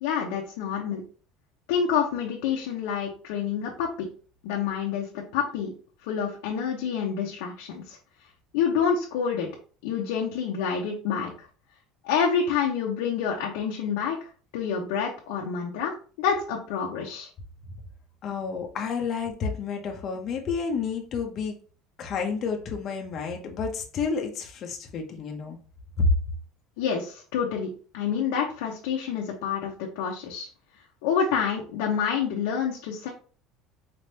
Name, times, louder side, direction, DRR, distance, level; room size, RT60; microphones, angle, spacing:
voice 1, 0.0-1.0 1.7-4.1 4.4-5.7 6.0-8.0 8.5-9.5 9.8-11.5 12.0-17.3 26.8-30.5 31.0-33.1, left 7 dB, 90° left, -1 dB, 0.8 m, -28 dB
voice 2, 18.2-21.6 22.0-25.6 26.0-26.1, left 4 dB, 40° left, 2 dB, 0.7 m, -29 dB
4.2 x 3.4 x 2.8 m, 0.40 s
cardioid pair, 140°, 0 cm